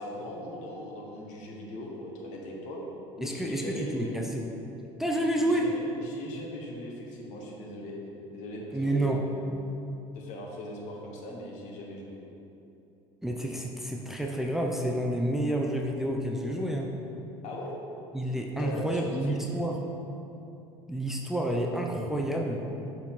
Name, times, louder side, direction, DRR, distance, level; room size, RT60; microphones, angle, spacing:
voice 1, 0.0-2.8 3.2-4.1 5.2-8.0 8.3-9.4 10.1-12.2 17.4-17.7 18.6-19.4, left 1 dB, 60° left, -1 dB, 1.3 m, -39 dB
voice 2, 3.2-4.5 5.0-5.7 8.7-9.2 13.2-16.9 18.1-19.8 20.9-22.6, right 1 dB, 5° right, 0 dB, 0.6 m, -29 dB
6.6 x 4.5 x 3.7 m, 2.8 s
hypercardioid pair, 80°, 14 cm